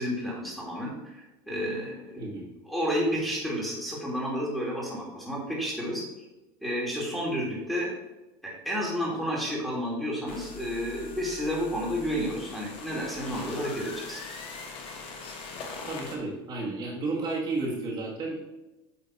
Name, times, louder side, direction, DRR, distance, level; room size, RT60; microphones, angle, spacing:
voice 1, 0.0-2.3 2.7-6.0 6.6-7.9 8.4-14.2, equal, ahead, -5 dB, 2.0 m, -31 dB
voice 2, 2.2-2.5 15.8-18.4, right 3 dB, 35° right, -4 dB, 1.8 m, -32 dB
sound 1, 10.3-16.2, left 4 dB, 45° left, 1.2 m, -41 dB
8.6 x 3.4 x 4.1 m, 1.0 s
supercardioid pair, 130°, 13 cm